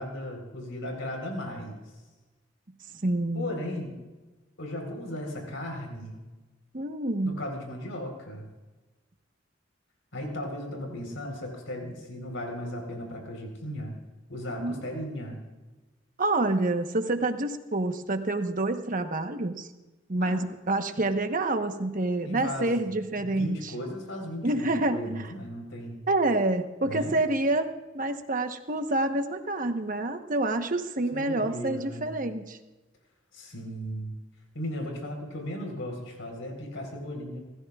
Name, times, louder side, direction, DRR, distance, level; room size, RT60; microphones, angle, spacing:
voice 1, 0.0-1.8 3.3-4.0 4.6-6.2 7.2-8.5 10.1-13.9 14.3-15.4 20.2-20.4 22.2-22.9 23.2-26.0 26.8-27.1 31.1-32.1 33.3-34.1 34.5-37.4, equal, 85° left, 2 dB, 4.1 m, -36 dB
voice 2, 3.0-3.5 6.7-7.4 14.6-14.8 16.2-19.7 20.1-23.7 24.4-25.3 26.1-32.6, right 2 dB, 45° right, 7 dB, 1.1 m, -28 dB
29.5 x 14.5 x 2.4 m, 1.2 s
head